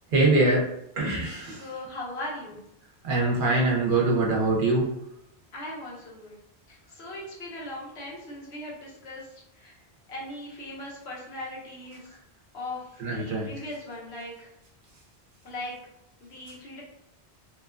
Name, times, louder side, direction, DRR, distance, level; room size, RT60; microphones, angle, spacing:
voice 1, 0.1-0.7 1.0-1.7 3.0-4.9 13.0-13.5, right 2 dB, 60° right, -3 dB, 0.7 m, -23 dB
voice 2, 1.5-2.6 5.5-6.3 6.7-9.7 10.1-12.1 12.5-14.5 15.4-15.8 16.2-16.8, left 1 dB, 80° left, -4 dB, 1.1 m, -39 dB
2.8 x 2.2 x 2.4 m, 0.80 s
omnidirectional pair, 1.1 m